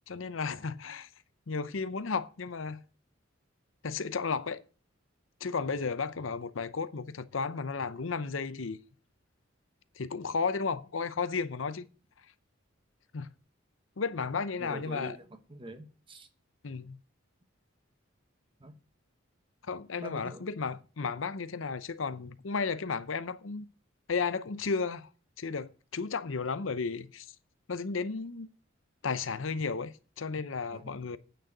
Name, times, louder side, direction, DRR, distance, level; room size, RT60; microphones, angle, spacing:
voice 1, 0.1-1.1 1.5-2.8 3.8-4.6 5.4-8.8 10.0-11.9 13.1-13.3 14.0-15.2 16.6-17.0 19.6-23.7 24.1-25.1 25.4-27.3 27.7-28.5 29.0-31.2, left 5 dB, 80° left, 0.7 m, -33 dB
voice 2, 14.6-16.3 18.6-18.7 20.0-20.5 30.7-31.0, right 1 dB, 25° right, 1.2 m, -45 dB
9.3 x 6.3 x 7.8 m
head